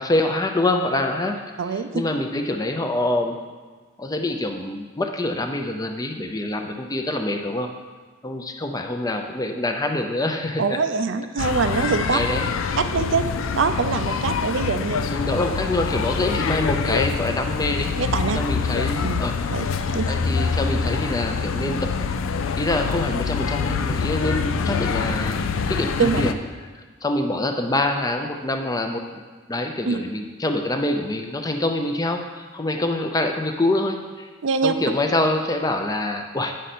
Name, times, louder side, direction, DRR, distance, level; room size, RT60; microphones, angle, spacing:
voice 1, 0.0-1.4 1.9-3.4 4.0-7.7 8.2-10.8 11.4-11.5 11.7-12.5 15.1-18.0 18.3-19.4 20.1-22.0 22.6-26.4 27.0-29.1 29.5-34.3 34.6-36.6, left 1 dB, 20° left, 5 dB, 0.5 m, -25 dB
voice 2, 1.6-2.0 10.6-12.2 12.8-13.3 13.6-15.0 18.0-18.4 19.0-19.2 19.5-19.7 19.9-20.1 26.0-26.3 29.9-30.0 34.4-34.7, right 5 dB, 70° right, 10 dB, 0.5 m, -23 dB
sound 1, 11.4-26.3, left 5 dB, 90° left, 0.4 m, -25 dB
9.0 x 6.4 x 4.3 m, 1.4 s
head